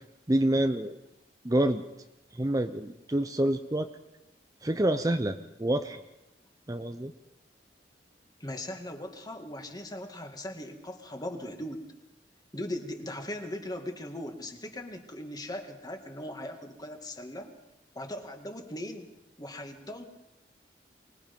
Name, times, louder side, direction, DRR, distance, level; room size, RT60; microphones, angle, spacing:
voice 1, 0.3-1.0 1.4-1.8 2.3-3.9 4.6-6.0 6.7-7.1, right 1 dB, 20° right, 8 dB, 0.7 m, -27 dB
voice 2, 8.4-11.9 12.5-17.5 17.9-19.1 19.4-20.1, left 1 dB, 25° left, 5 dB, 2.1 m, -39 dB
24.5 x 20.5 x 5.4 m, 0.93 s
head